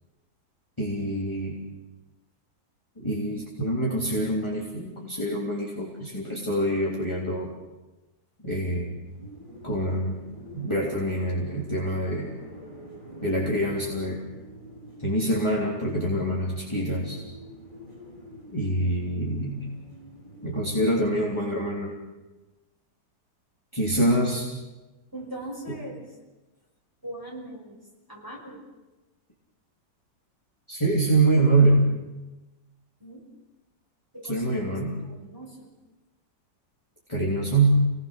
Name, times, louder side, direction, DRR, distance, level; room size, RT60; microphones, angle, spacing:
voice 1, 0.8-1.6 3.0-7.5 8.4-9.0 9.6-10.2 10.5-12.3 13.2-14.2 15.0-17.2 18.5-19.6 20.4-21.9 23.7-24.5 30.7-31.9 34.2-35.0 37.1-37.8, right 1 dB, 15° left, -5 dB, 3.2 m, -25 dB
sound 1, 9.0-20.9, equal, 25° right, 4.8 m, -46 dB
voice 2, 25.1-26.2 27.0-27.8 28.1-28.6 33.0-33.2 34.1-34.8 35.0-35.7, right 1 dB, 10° right, -2 dB, 5.9 m, -40 dB
29.0 x 19.0 x 6.4 m, 1.1 s
omnidirectional pair, 1.9 m